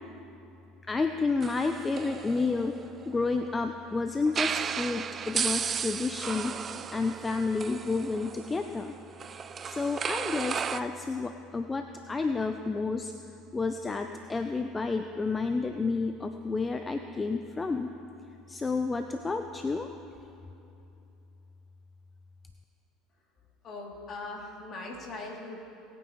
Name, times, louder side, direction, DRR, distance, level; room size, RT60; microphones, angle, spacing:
voice 1, 0.9-6.5 6.9-8.9 9.6-13.1 13.5-17.9 18.5-19.9, left 3 dB, 20° left, 7 dB, 0.6 m, -30 dB
sound 1, 1.4-3.5 4.3-10.8, right 7 dB, 35° right, 0.4 m, -34 dB
voice 2, 23.6-25.7, left 2 dB, 45° left, -2 dB, 2.9 m, -40 dB
20.0 x 9.1 x 3.1 m, 2.8 s
hypercardioid pair, 75°, 0 cm